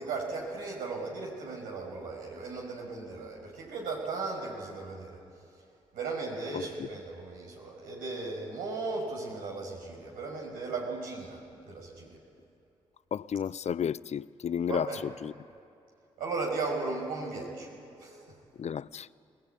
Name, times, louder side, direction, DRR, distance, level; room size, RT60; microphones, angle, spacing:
voice 1, 0.0-5.2 5.9-12.2 14.7-15.0 16.2-17.7 18.0-18.2, right 3 dB, 85° right, 6.3 m, -36 dB
voice 2, 13.1-14.9 15.2-15.3 18.6-19.1, left 8 dB, 50° left, 0.6 m, -32 dB
22.0 x 19.0 x 9.8 m
hypercardioid pair, 45°, 14 cm